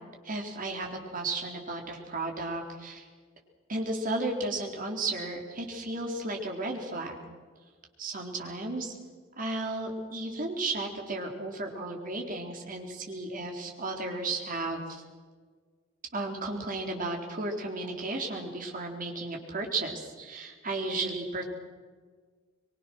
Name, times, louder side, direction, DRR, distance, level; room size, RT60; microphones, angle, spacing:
voice 1, 0.2-3.1 3.7-7.2 8.0-8.9 9.4-15.0 16.1-21.4, right 2 dB, 45° right, 1 dB, 4.1 m, -34 dB
24.5 x 23.0 x 6.3 m, 1.6 s
head